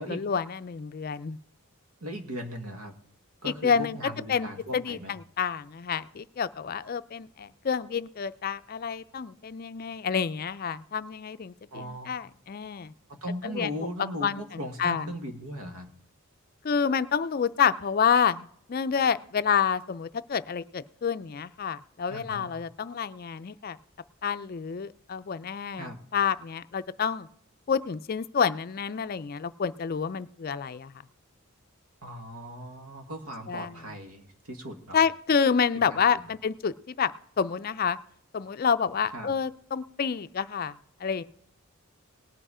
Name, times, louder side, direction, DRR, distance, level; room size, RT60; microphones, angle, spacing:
voice 1, 0.0-1.4 3.4-4.0 4.3-4.5 4.7-12.9 13.4-13.7 14.2-15.1 16.6-23.8 24.2-27.3 27.7-30.9 33.5-33.7 34.9-37.1 37.4-38.0 38.3-40.8 41.0-41.2, left 6 dB, 40° left, 13 dB, 0.4 m, -28 dB
voice 2, 2.0-2.9 3.4-5.1 11.7-12.1 13.1-15.9 22.1-22.5 25.8-26.0 32.0-35.0 35.9-36.2 39.1-39.3, equal, 85° right, 5 dB, 1.7 m, -38 dB
18.5 x 7.8 x 4.9 m, 0.64 s
head